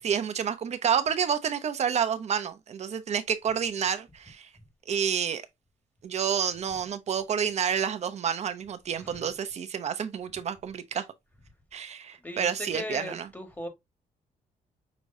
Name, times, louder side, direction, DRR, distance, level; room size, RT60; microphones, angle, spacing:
voice 1, 0.0-4.5 4.9-5.4 6.0-11.0 11.7-13.3, right 7 dB, 50° right, 0.8 m, -29 dB
voice 2, 12.2-13.7, left 1 dB, 10° left, 1.7 m, -38 dB
6.3 x 3.0 x 2.7 m
cardioid pair, 110°, 14 cm